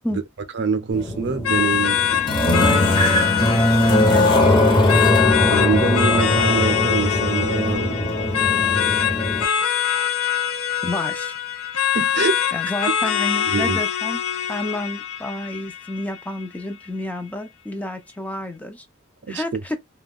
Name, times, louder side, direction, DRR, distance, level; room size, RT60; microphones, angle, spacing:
voice 1, 0.5-2.8 4.0-4.2 5.4-8.5 11.9-12.4 13.5-13.8 19.3-19.4, right 5 dB, 55° right, 0.5 m, -25 dB
sound 1, 0.9-9.4, left 1 dB, 20° left, 0.8 m, -20 dB
sound 2, 1.4-16.4, left 9 dB, 70° left, 0.5 m, -23 dB
voice 2, 10.8-11.4 12.5-14.2 14.5-18.9 19.3-19.8, left 1 dB, 5° left, 0.4 m, -30 dB
2.3 x 2.2 x 3.5 m
head